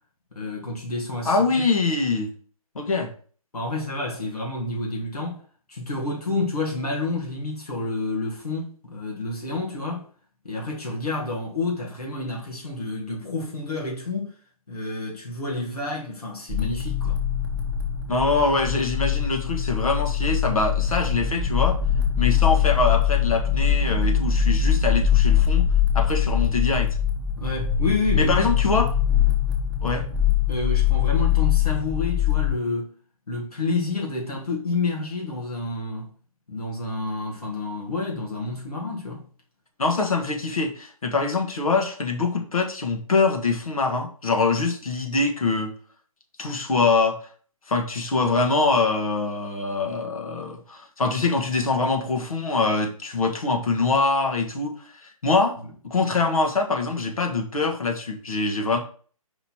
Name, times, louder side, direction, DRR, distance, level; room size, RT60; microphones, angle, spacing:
voice 1, 0.4-1.6 3.5-5.4 5.7-10.1 10.4-14.3 14.7-17.2 27.4-28.4 30.5-32.9 33.3-36.1 36.5-39.3, left 3 dB, 85° left, 1.8 m, -29 dB
voice 2, 1.2-2.3 2.7-3.1 18.1-21.8 22.2-25.7 25.9-26.9 28.2-28.9 29.8-30.0 39.8-45.7 46.4-47.2 47.7-58.8, left 3 dB, 70° left, 1.6 m, -24 dB
sound 1, 16.5-32.5, left 9 dB, 5° right, 1.0 m, -22 dB
5.3 x 4.1 x 4.4 m
figure-of-eight pair, 145°, 19 cm